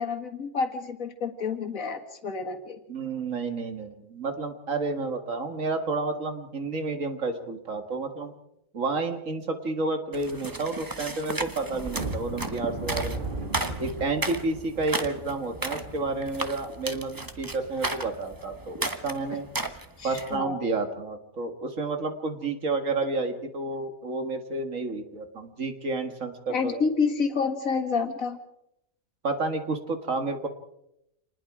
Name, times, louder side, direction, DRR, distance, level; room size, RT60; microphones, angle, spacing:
voice 1, 0.0-2.8 19.3-19.4 20.0-20.6 26.5-28.4, left 5 dB, 75° left, 6 dB, 2.2 m, -29 dB
voice 2, 2.9-8.3 8.7-13.3 13.8-19.5 20.0-26.8 29.2-30.5, right 3 dB, 70° right, 6 dB, 2.2 m, -30 dB
sound 1, 10.1-20.4, right 2 dB, 15° right, 1.0 m, -34 dB
sound 2, 11.9-18.7 19.0-19.2 19.6-19.8 20.2-20.4, right 2 dB, 35° right, 2.1 m, -38 dB
27.0 x 20.0 x 4.9 m, 0.82 s
omnidirectional pair, 1.4 m